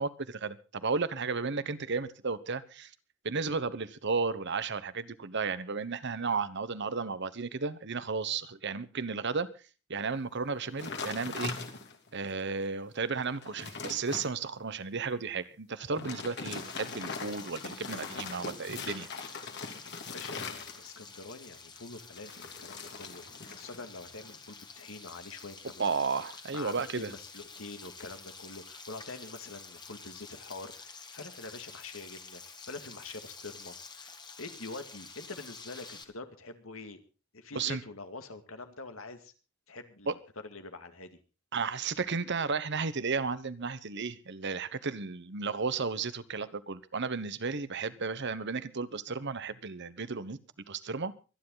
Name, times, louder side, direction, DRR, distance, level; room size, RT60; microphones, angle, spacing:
voice 1, 0.0-2.9 3.2-9.5 9.9-11.5 12.1-19.1 25.8-27.1 37.5-37.8 40.1-40.2 41.5-50.4 50.7-51.1, right 4 dB, 60° right, 14 dB, 1.1 m, -33 dB
sound 1, 10.8-12.1 12.6-12.7 13.1-14.3 15.8-21.1 22.1-23.8 24.1-24.5, left 4 dB, 60° left, 2.8 m, -41 dB
Frying (food), 16.4-36.0, left 4 dB, 20° left, 1.8 m, -49 dB
voice 2, 20.1-25.9 26.5-37.0 37.3-39.3 39.7-40.2 40.4-41.1, left 3 dB, 85° left, 7 dB, 2.3 m, -45 dB
24.5 x 10.5 x 4.0 m, 0.34 s
head